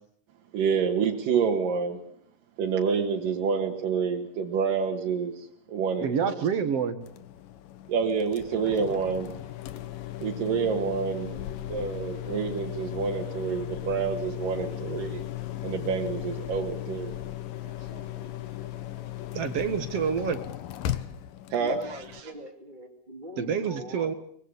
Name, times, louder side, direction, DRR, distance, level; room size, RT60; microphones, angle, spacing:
voice 1, 0.5-2.0 2.6-6.4 7.9-9.3 10.2-11.4 11.7-15.2 15.6-17.1 17.6-18.1 21.5-22.0, right 6 dB, 85° right, 0 dB, 3.5 m, -28 dB
voice 2, 6.0-7.0 19.3-20.4 23.4-24.1, right 7 dB, 55° right, 10 dB, 2.3 m, -27 dB
sound 1, 7.0-22.2, left 13 dB, 90° left, 2.9 m, -37 dB
voice 3, 21.6-24.1, equal, 15° right, 4 dB, 2.6 m, -42 dB
24.5 x 21.5 x 8.4 m, 0.64 s
omnidirectional pair, 3.8 m